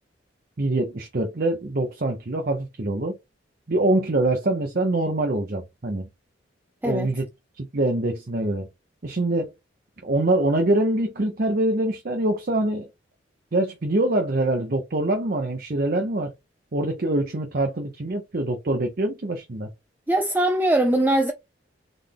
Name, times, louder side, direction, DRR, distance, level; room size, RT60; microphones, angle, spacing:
voice 1, 0.6-3.2 3.7-6.1 6.8-7.2 7.6-8.7 9.0-9.5 10.0-12.9 13.5-16.3 16.7-19.7, right 2 dB, 50° right, 0.7 m, -24 dB
voice 2, 20.1-21.3, right 1 dB, 10° right, 0.4 m, -21 dB
3.9 x 3.4 x 3.4 m
head